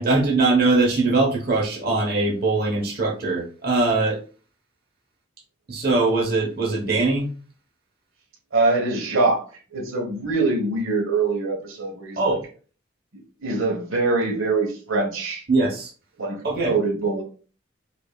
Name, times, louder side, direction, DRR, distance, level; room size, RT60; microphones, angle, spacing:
voice 1, 0.0-4.2 5.7-7.3 12.2-12.4 15.5-15.9 16.4-16.7, right 3 dB, 50° right, 0.9 m, -21 dB
voice 2, 8.5-9.4 9.7-12.4 13.4-15.4 16.2-17.2, right 3 dB, 85° right, 1.1 m, -23 dB
5.3 x 2.6 x 2.2 m
head